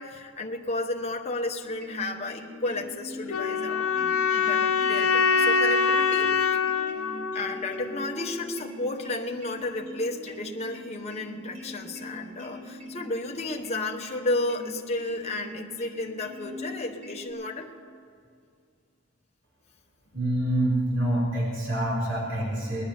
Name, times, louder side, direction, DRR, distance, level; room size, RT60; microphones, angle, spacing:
voice 1, 0.0-6.7 7.3-17.7, left 2 dB, 30° left, 1 dB, 1.0 m, -33 dB
sound 1, 1.6-17.3, equal, 40° right, 4.9 m, -43 dB
sound 2, 3.3-8.3, left 5 dB, 85° left, 0.9 m, -24 dB
voice 2, 20.1-22.8, right 1 dB, 60° right, -3 dB, 4.2 m, -26 dB
20.0 x 10.0 x 7.2 m, 2.3 s
head